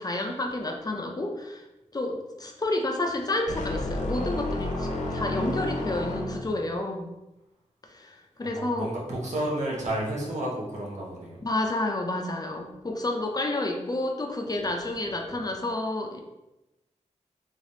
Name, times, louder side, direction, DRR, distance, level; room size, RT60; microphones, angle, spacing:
voice 1, 0.0-1.6 1.9-7.1 7.9-8.9 11.4-16.2, left 2 dB, 30° left, 2 dB, 0.4 m, -30 dB
sound 1, 3.5-6.7, left 2 dB, 85° left, 0.6 m, -31 dB
voice 2, 8.5-11.4, right 1 dB, 70° right, -4 dB, 1.0 m, -31 dB
3.3 x 3.3 x 2.7 m, 0.97 s
wide cardioid pair, 105°, 12 cm